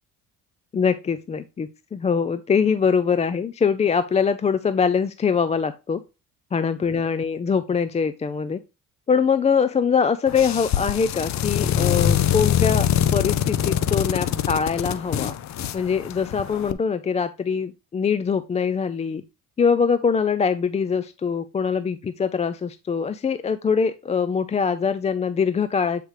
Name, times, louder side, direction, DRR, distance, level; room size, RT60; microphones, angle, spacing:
voice 1, 0.7-6.0 6.5-8.6 9.1-15.3 15.7-19.2 19.6-26.0, left 6 dB, 20° left, 12 dB, 0.3 m, -23 dB
sound 1, 10.3-16.7, left 10 dB, 50° left, 0.6 m, -24 dB
7.9 x 5.0 x 3.0 m, 0.28 s
cardioid pair, 100°, 35 cm